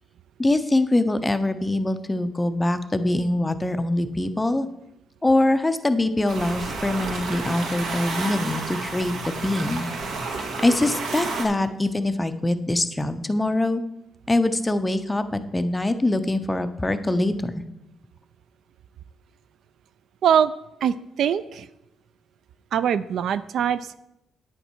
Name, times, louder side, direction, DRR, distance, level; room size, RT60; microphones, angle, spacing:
voice 1, 0.4-4.7 5.2-9.9 10.6-13.8 14.3-17.5, left 2 dB, 10° left, 10 dB, 0.4 m, -23 dB
sound 1, 6.3-11.4, right 3 dB, 85° right, 1.8 m, -31 dB
voice 2, 20.8-21.7 22.7-24.0, right 8 dB, 55° right, 15 dB, 0.3 m, -22 dB
9.6 x 8.1 x 4.4 m, 0.86 s
cardioid pair, 180°, 0 cm